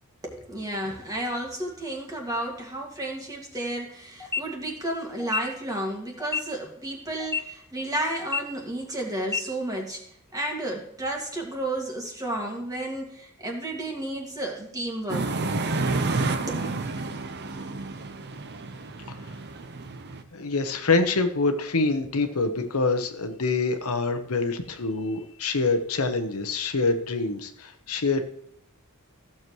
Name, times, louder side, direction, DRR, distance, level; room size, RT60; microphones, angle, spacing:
voice 1, 0.2-10.0 10.3-15.3 16.5-16.6, right 1 dB, 15° right, 1 dB, 2.0 m, -32 dB
sound 1, 4.2-4.4 5.2-5.4 6.2-6.4 7.2-7.4 8.2-8.4 9.2-9.4, left 5 dB, 10° left, 0.7 m, -28 dB
sound 2, 15.1-20.2, right 3 dB, 50° right, 0.8 m, -30 dB
voice 2, 20.3-28.2, left 3 dB, 75° left, 7 dB, 1.1 m, -25 dB
15.0 x 7.2 x 3.1 m, 0.69 s
head